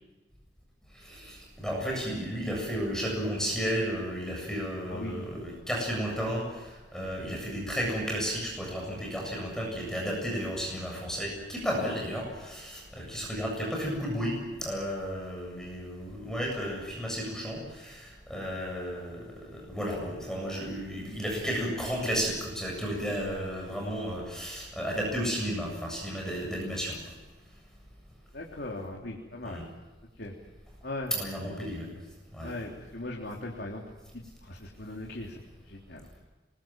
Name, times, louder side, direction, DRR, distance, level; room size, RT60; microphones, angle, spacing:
voice 1, 0.9-27.1 29.4-29.7 31.1-32.0 32.3-32.5, equal, 5° left, -1 dB, 7.4 m, -33 dB
voice 2, 4.9-5.3 28.3-29.7 30.2-30.3 30.8-31.1 32.4-33.8 34.1-35.4 35.7-36.1, left 2 dB, 70° left, -1 dB, 3.4 m, -39 dB
26.5 x 22.5 x 7.5 m, 1.2 s
head